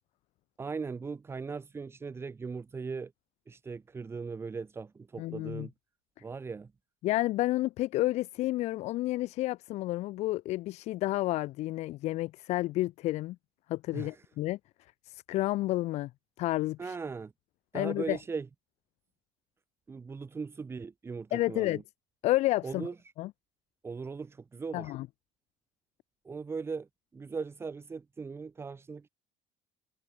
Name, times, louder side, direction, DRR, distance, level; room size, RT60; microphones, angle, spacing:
voice 1, 0.6-3.1 3.5-5.7 6.2-6.7 13.9-14.2 16.8-17.3 17.7-18.5 19.9-21.8 22.6-22.9 23.8-24.9 26.2-26.9 27.1-29.1, right 5 dB, 20° right, 5.0 m, -39 dB
voice 2, 5.2-5.7 7.0-13.4 13.7-14.6 15.1-16.1 16.4-17.0 17.7-18.2 21.3-21.8 22.2-22.9 23.2-23.3 24.7-25.1, left 17 dB, 55° left, 0.8 m, -30 dB
cardioid pair, 160°, 14 cm